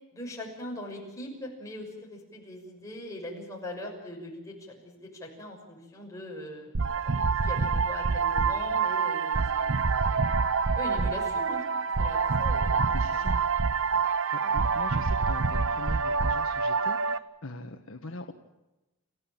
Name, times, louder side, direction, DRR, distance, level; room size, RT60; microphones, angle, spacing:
voice 1, 0.1-10.5 10.7-11.6 12.0-13.2 14.4-14.5, left 1 dB, 15° left, -2 dB, 6.3 m, -41 dB
sound 1, 6.7-17.2, right 5 dB, 60° right, 0.8 m, -26 dB
voice 2, 12.9-13.4 14.3-18.3, left 2 dB, 65° left, 5 dB, 1.5 m, -42 dB
29.5 x 15.5 x 9.1 m, 1.0 s
head